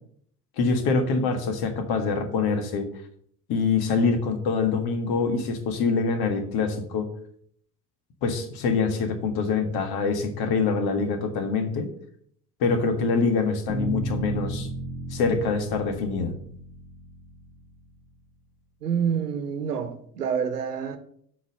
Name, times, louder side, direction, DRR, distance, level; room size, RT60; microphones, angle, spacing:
voice 1, 0.6-2.9 3.5-7.1 8.2-11.9 12.6-14.7 15.1-16.4, left 4 dB, 50° left, 1.7 m, -25 dB
sound 1, 13.7-17.7, right 2 dB, 15° left, 2.3 m, -34 dB
voice 2, 18.8-21.0, right 7 dB, 80° right, 1.1 m, -27 dB
8.0 x 5.9 x 6.7 m
figure-of-eight pair, 55°, 46 cm